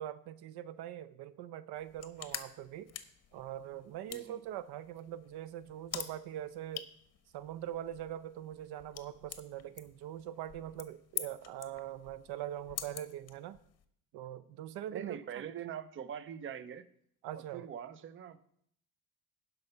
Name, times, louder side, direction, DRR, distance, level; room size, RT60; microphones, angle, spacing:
voice 1, 0.0-2.9 3.3-6.9 7.3-13.6 14.1-15.4 17.2-17.7, right 11 dB, 80° right, 0.6 m, -42 dB
sound 1, 1.8-13.8, left 10 dB, 40° left, 0.9 m, -47 dB
voice 2, 4.1-4.4 14.9-16.8 17.3-18.4, right 9 dB, 30° right, 0.6 m, -43 dB
10.5 x 5.6 x 5.6 m
cardioid pair, 115°, 38 cm